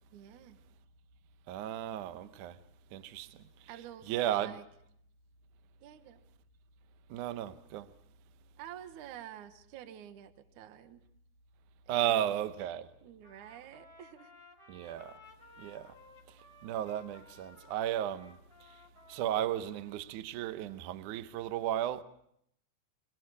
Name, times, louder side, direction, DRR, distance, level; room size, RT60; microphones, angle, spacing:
voice 1, 0.1-0.6 3.7-4.6 5.8-6.2 8.6-11.0 11.9-12.4 13.0-14.3, right 10 dB, 65° right, 2.1 m, -49 dB
voice 2, 1.5-2.6 2.9-3.4 4.1-4.6 7.1-7.9 11.9-12.9 14.7-15.2 15.6-15.9 16.3-16.4 16.6-18.4 19.1-22.0, right 11 dB, 85° right, 1.7 m, -34 dB
Trumpet, 13.2-20.1, left 2 dB, 10° right, 3.3 m, -58 dB
28.5 x 22.0 x 4.8 m
omnidirectional pair, 5.0 m